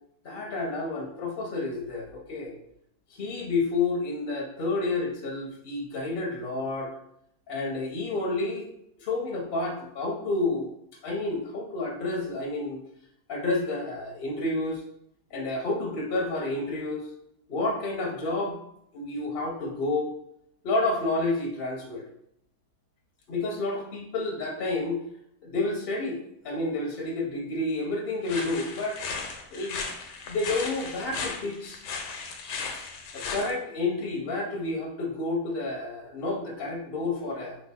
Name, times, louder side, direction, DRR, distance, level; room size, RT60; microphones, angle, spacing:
voice 1, 0.2-2.5 3.1-7.0 7.5-8.6 9.0-10.7 11.0-12.8 13.3-14.8 15.3-17.0 17.5-18.6 18.9-20.1 20.6-22.0 23.3-25.0 25.4-26.2 26.4-29.0 29.5-29.8 30.3-31.8 33.1-37.6, left 2 dB, 55° left, 0 dB, 0.6 m, -30 dB
sound 1, 28.3-33.5, left 4 dB, 85° left, 1.3 m, -36 dB
4.7 x 2.4 x 3.5 m, 0.74 s
omnidirectional pair, 1.8 m